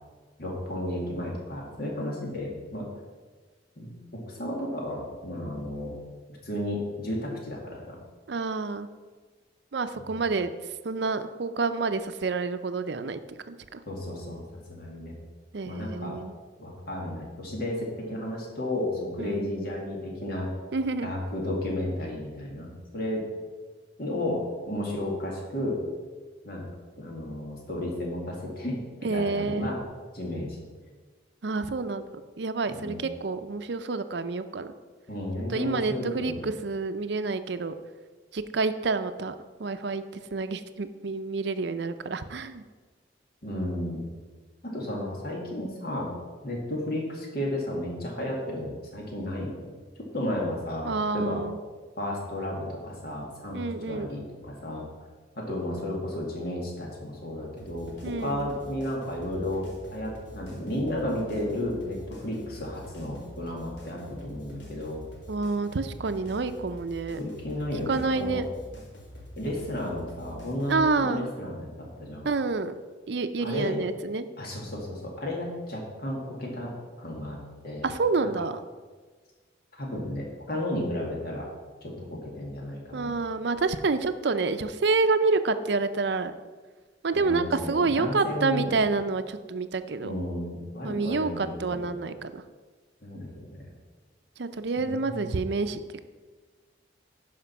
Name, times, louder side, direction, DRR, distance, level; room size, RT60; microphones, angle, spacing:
voice 1, 0.4-2.9 3.8-5.9 6.4-8.0 10.1-10.2 13.9-14.4 14.7-15.1 15.6-16.2 16.6-20.5 21.0-23.2 24.0-24.4 24.7-25.8 26.4-26.7 27.0-29.8 30.1-30.6 32.7-33.0 35.1-36.5 43.4-44.1 44.6-46.1 46.4-49.6 50.1-51.4 52.0-54.8 55.4-65.0 67.2-68.4 69.4-72.3 73.4-73.8 74.4-77.4 77.6-77.9 79.8-81.5 81.8-83.2 87.1-88.8 90.0-91.9 93.0-93.7 94.8-95.3, left 1 dB, 55° left, -2 dB, 2.2 m, -33 dB
voice 2, 8.3-8.9 9.7-10.5 10.8-13.2 13.5-13.8 15.5-16.3 19.2-19.5 20.7-21.2 29.0-29.7 31.4-32.0 32.4-34.7 35.5-37.7 38.3-39.3 39.6-40.0 40.3-42.6 50.8-51.6 53.5-54.1 58.0-58.5 65.3-67.2 67.9-68.5 70.7-71.3 72.2-72.7 73.1-74.2 77.8-78.6 82.9-86.3 87.0-90.1 90.8-92.4 94.4-96.0, right 3 dB, 65° right, 10 dB, 0.5 m, -28 dB
sound 1, 57.6-70.8, equal, 70° left, 2.3 m, -46 dB
11.0 x 5.1 x 5.7 m, 1.4 s
head